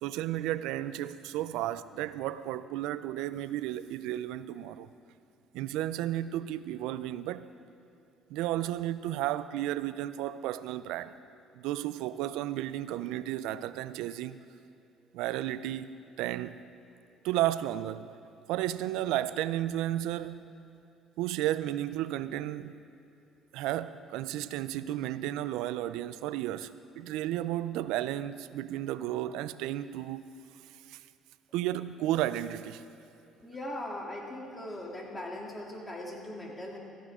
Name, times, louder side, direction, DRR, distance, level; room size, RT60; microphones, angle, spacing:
voice 1, 0.0-4.9 5.5-7.5 8.3-11.1 11.5-14.4 15.1-16.6 17.2-18.1 18.5-20.4 21.2-22.7 23.5-30.4 30.9-31.0 31.5-32.8, right 13 dB, 80° right, 0.4 m, -33 dB
voice 2, 33.4-36.8, left 1 dB, 20° left, 2.9 m, -39 dB
16.5 x 14.5 x 3.7 m
supercardioid pair, 85°, 0 cm